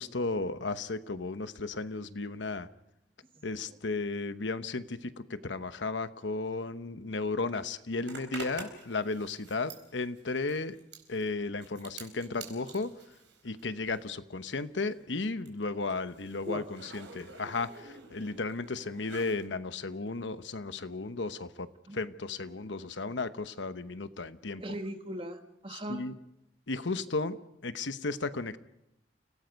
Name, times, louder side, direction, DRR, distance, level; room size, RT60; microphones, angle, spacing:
voice 1, 0.0-2.7 3.4-10.8 11.1-12.9 13.4-21.7 21.9-24.6 25.7-26.1 26.7-27.4 27.6-28.6, left 3 dB, 85° left, 11 dB, 1.0 m, -34 dB
Zipper (clothing), 8.0-14.2 14.5-19.4, right 4 dB, 85° right, 4.4 m, -49 dB
voice 2, 24.6-26.0, right 1 dB, 30° right, 6 dB, 1.6 m, -39 dB
29.5 x 17.5 x 5.3 m, 0.83 s
head